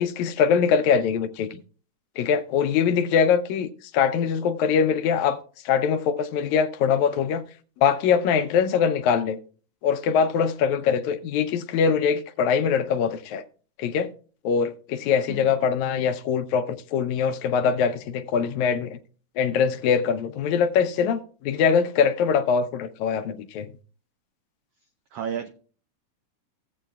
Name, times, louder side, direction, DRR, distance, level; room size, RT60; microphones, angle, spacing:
voice 1, 0.0-1.6 2.2-3.7 3.9-5.4 5.7-7.4 7.8-9.4 9.8-13.4 13.8-14.1 14.4-19.0 19.4-23.7, left 6 dB, 75° left, 1.9 m, -23 dB
voice 2, 25.1-25.5, right 8 dB, 85° right, 1.3 m, -32 dB
17.0 x 7.9 x 2.3 m
omnidirectional pair, 3.5 m